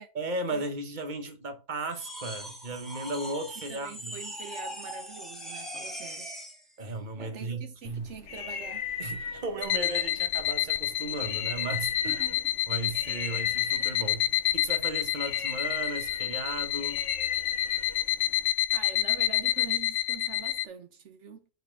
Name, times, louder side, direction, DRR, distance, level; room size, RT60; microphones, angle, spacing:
voice 1, 0.1-4.2 6.8-8.1 9.0-12.2 12.7-17.0, right 2 dB, 40° right, 1.4 m, -35 dB
sound 1, 1.9-6.6, equal, ahead, 1.6 m, -40 dB
voice 2, 3.7-6.3 7.2-8.9 12.0-12.5 18.3-21.5, right 6 dB, 80° right, 1.2 m, -44 dB
sound 2, 7.9-18.5, left 6 dB, 75° left, 1.2 m, -37 dB
sound 3, 9.6-20.7, left 13 dB, 90° left, 0.9 m, -29 dB
6.6 x 4.3 x 6.6 m
omnidirectional pair, 1.2 m